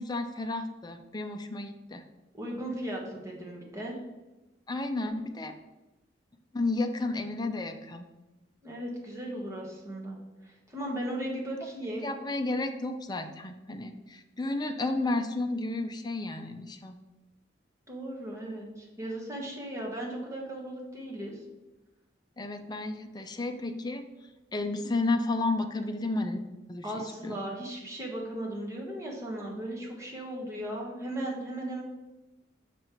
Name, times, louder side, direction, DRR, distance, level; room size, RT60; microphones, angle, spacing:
voice 1, 0.0-2.0 4.7-5.5 6.5-8.1 12.0-17.0 22.4-24.0 24.5-26.4 26.7-27.4, left 2 dB, 20° left, 6 dB, 0.5 m, -32 dB
voice 2, 2.4-4.0 8.6-10.2 10.4-12.1 17.9-21.4 26.8-31.8, right 1 dB, 15° right, -2 dB, 1.4 m, -37 dB
6.5 x 4.3 x 4.4 m, 1.1 s
head